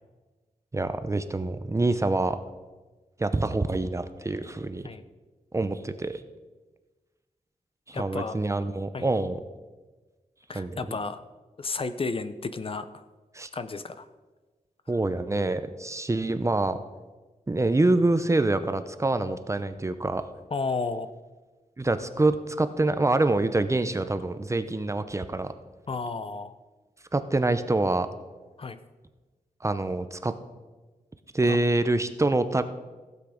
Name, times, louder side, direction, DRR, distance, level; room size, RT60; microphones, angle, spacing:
voice 1, 0.7-2.4 3.2-4.9 5.5-6.2 7.9-9.4 10.5-11.0 13.3-13.5 14.9-16.8 17.5-20.2 21.8-25.5 27.1-28.1 29.6-30.3 31.3-32.6, right 2 dB, 20° right, 10 dB, 0.6 m, -26 dB
voice 2, 7.9-8.3 8.9-9.1 10.5-11.2 11.6-13.0 13.5-14.1 20.5-21.1 25.9-26.5 28.6-28.8 31.5-31.6, left 4 dB, 40° left, 11 dB, 0.6 m, -32 dB
15.5 x 8.3 x 5.0 m, 1.2 s
wide cardioid pair, 165°, 14 cm